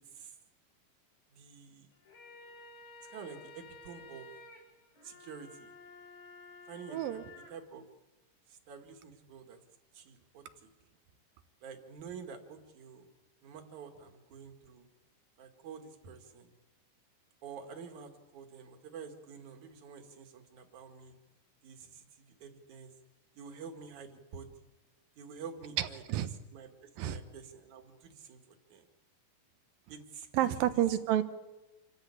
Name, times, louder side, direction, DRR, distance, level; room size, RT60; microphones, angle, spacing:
voice 1, 1.3-1.9 3.1-4.3 5.0-5.7 6.7-7.2 7.5-7.9 8.5-9.6 9.9-10.7 11.6-13.1 13.4-14.8 15.4-16.5 17.4-21.1 21.6-22.9 23.4-24.5 25.2-26.0 26.5-26.7 27.0-28.4 28.7-28.9 29.9-30.8, right 6 dB, 60° right, 4 dB, 3.3 m, -48 dB
sound 1, 1.9-7.5, left 3 dB, 75° left, 6.6 m, -53 dB
voice 2, 6.9-7.2 25.8-26.3 27.0-27.2 30.3-31.2, right 12 dB, 80° right, 10 dB, 2.8 m, -30 dB
27.5 x 14.5 x 8.6 m, 1.1 s
omnidirectional pair, 4.1 m